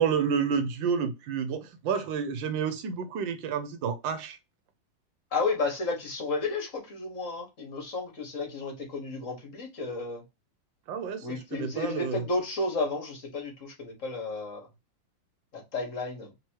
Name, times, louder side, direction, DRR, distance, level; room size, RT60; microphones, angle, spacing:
voice 1, 0.0-4.4 10.9-12.2, right 6 dB, 80° right, 1.4 m, -29 dB
voice 2, 5.3-10.2 11.2-14.6 15.5-16.3, left 3 dB, 45° left, 1.6 m, -32 dB
3.5 x 3.0 x 4.4 m
omnidirectional pair, 2.0 m